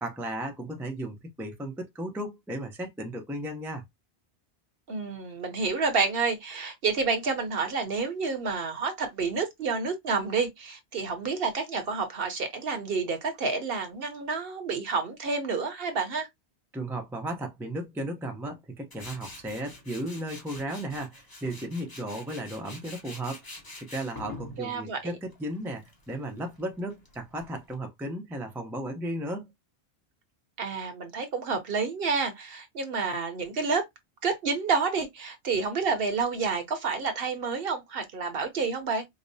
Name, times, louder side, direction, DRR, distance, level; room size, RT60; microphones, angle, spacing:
voice 1, 0.0-3.8 16.7-23.4 23.8-29.5, right 1 dB, 5° right, 0.4 m, -35 dB
voice 2, 4.9-16.3 24.6-25.2 30.6-33.9 34.2-39.0, right 4 dB, 60° right, 1.0 m, -29 dB
Tools, 18.9-27.7, left 2 dB, 20° left, 0.8 m, -46 dB
5.0 x 2.0 x 2.6 m
omnidirectional pair, 1.2 m